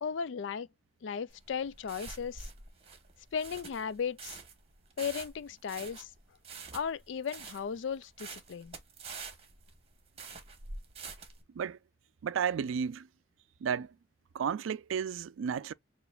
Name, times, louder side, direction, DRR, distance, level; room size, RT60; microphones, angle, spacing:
voice 1, 0.0-0.7 1.0-2.5 3.3-4.4 5.0-6.1 6.7-8.8, left 6 dB, 70° left, 0.4 m, -36 dB
sound 1, 1.3-11.4, right 4 dB, 30° right, 1.0 m, -46 dB
voice 2, 12.2-13.1 13.6-13.9 14.3-15.7, right 7 dB, 90° right, 0.3 m, -32 dB
6.9 x 2.5 x 2.3 m
head